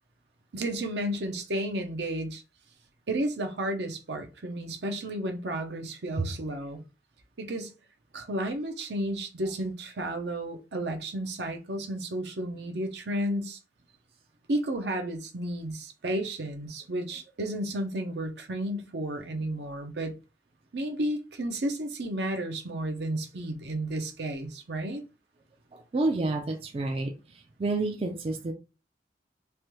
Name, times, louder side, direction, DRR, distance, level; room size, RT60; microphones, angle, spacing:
voice 1, 0.5-2.4 3.1-6.8 7.4-7.7 8.1-13.6 14.5-20.1 20.7-25.0, right 1 dB, 75° right, 0.7 m, -32 dB
voice 2, 25.7-28.5, right 2 dB, 30° right, 0.3 m, -30 dB
3.2 x 2.2 x 3.0 m
head